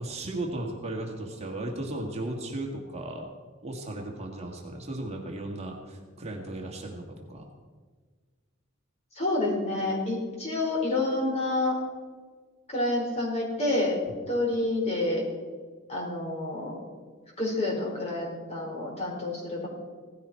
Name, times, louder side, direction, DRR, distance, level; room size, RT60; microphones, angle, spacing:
voice 1, 0.0-3.3 3.6-7.5, right 1 dB, 30° right, 0 dB, 1.9 m, -36 dB
voice 2, 9.1-11.8 12.7-14.0 14.3-15.2 15.9-16.8 17.4-19.7, left 2 dB, 30° left, -2 dB, 4.6 m, -28 dB
17.0 x 15.5 x 4.5 m, 1.5 s
head